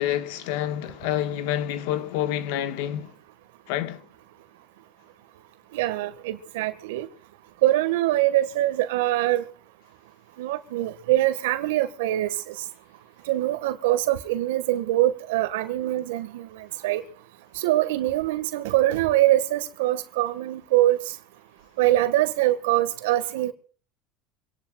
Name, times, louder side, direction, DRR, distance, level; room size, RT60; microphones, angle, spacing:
voice 1, 0.0-3.1 3.7-4.0, left 11 dB, 75° left, 1.6 m, -28 dB
voice 2, 5.7-7.1 7.6-9.4 10.4-12.3 13.3-16.5 16.8-17.0 17.6-21.0 21.8-23.5, right 15 dB, 80° right, 1.7 m, -23 dB
26.0 x 18.5 x 2.5 m
supercardioid pair, 90°, 0 cm